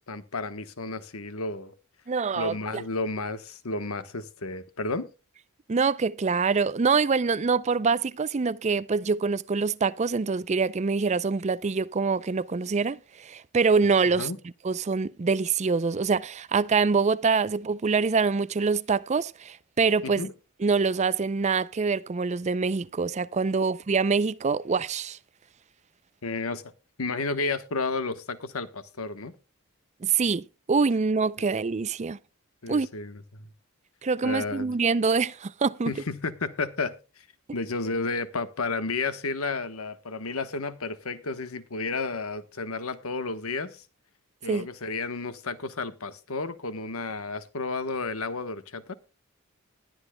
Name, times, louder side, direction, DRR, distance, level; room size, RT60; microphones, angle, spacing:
voice 1, 0.1-1.7 2.4-5.1 14.2-14.4 20.0-20.3 26.2-26.6 27.0-29.3 32.6-33.5 34.2-34.7 35.9-37.2 37.5-43.8 44.4-48.9, left 3 dB, 75° left, 1.2 m, -32 dB
voice 2, 2.1-2.8 5.7-14.3 14.6-20.2 20.6-25.2 30.0-32.2 32.7-32.9 34.0-35.9 44.5-44.7, right 4 dB, 30° right, 0.4 m, -25 dB
20.0 x 8.9 x 2.2 m
head